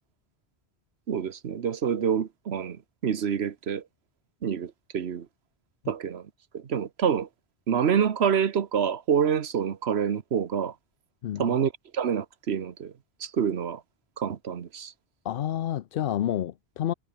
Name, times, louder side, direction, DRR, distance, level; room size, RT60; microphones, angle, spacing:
voice 1, 1.1-2.8 3.0-3.8 4.4-5.3 5.9-6.2 6.5-7.3 7.7-10.7 11.4-12.9 13.2-13.8 14.2-14.9, right 7 dB, 80° right, 1.3 m, -27 dB
voice 2, 11.2-11.6 15.2-16.9, left 11 dB, 65° left, 0.7 m, -29 dB
omnidirectional pair, 1.1 m